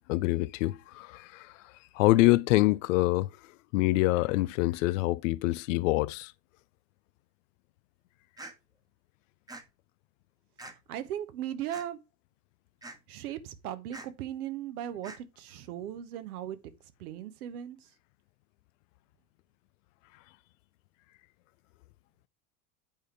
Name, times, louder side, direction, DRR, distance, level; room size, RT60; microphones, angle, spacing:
voice 1, 0.1-6.3, left 19 dB, 50° left, 0.6 m, -26 dB
sound 1, 8.4-8.5 9.5-9.6 10.6-10.7 11.7-11.8 12.8-13.0 13.9-14.1 15.0-15.2, right 2 dB, 10° right, 1.3 m, -44 dB
voice 2, 10.7-12.0 13.1-16.6 17.0-17.9, right 11 dB, 60° right, 1.3 m, -38 dB
8.9 x 5.1 x 4.6 m
figure-of-eight pair, 80°, 50 cm